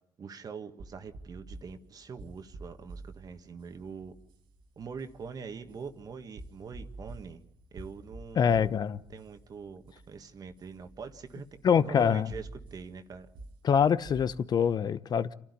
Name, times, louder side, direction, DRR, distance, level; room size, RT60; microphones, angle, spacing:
voice 1, 0.2-4.1 4.8-7.4 7.7-8.7 9.1-11.4 11.7-13.3, right 5 dB, 45° right, 1.7 m, -43 dB
sound 1, 0.8-14.7, right 2 dB, 65° right, 1.9 m, -50 dB
voice 2, 8.4-9.0 11.6-12.3 13.6-15.3, left 7 dB, 50° left, 0.9 m, -25 dB
28.0 x 12.0 x 9.9 m
cardioid pair, 80°, 9 cm